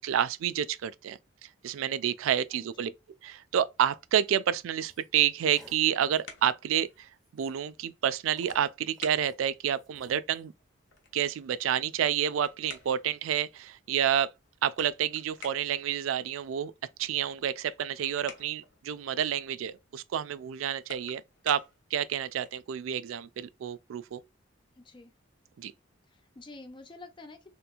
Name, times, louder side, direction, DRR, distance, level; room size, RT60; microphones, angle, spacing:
voice 1, 0.0-2.9 3.2-10.5 11.1-14.3 14.6-16.7 17.0-24.2 25.6-25.7, right 9 dB, 90° right, 0.3 m, -29 dB
voice 2, 2.5-2.9 24.8-25.1 26.1-27.5, left 2 dB, 25° left, 0.5 m, -49 dB
sound 1, 4.9-5.1 5.5-5.8 6.1-6.3 6.9-7.0 7.2-7.7 8.3-9.4 9.8-10.5, left 1 dB, ahead, 0.8 m, -57 dB
sound 2, 5.8-22.7, left 4 dB, 65° left, 0.9 m, -54 dB
3.4 x 2.9 x 2.3 m
head